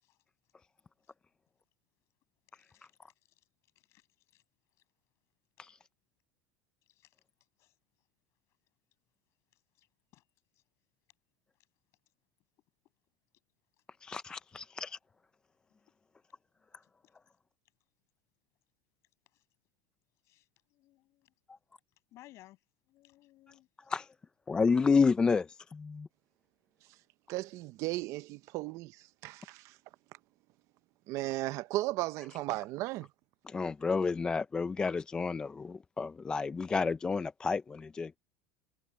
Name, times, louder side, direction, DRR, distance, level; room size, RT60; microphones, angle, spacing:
voice 1, 14.0-15.0 23.9-24.1 24.5-26.1 33.5-38.2, left 5 dB, 15° left, 0.4 m, -30 dB
voice 2, 20.7-21.3 22.1-22.6 22.9-23.7, left 16 dB, 45° left, 6.4 m, -58 dB
voice 3, 27.3-29.7 31.1-33.1, right 18 dB, 50° right, 0.6 m, -35 dB
supercardioid pair, 150°, 7 cm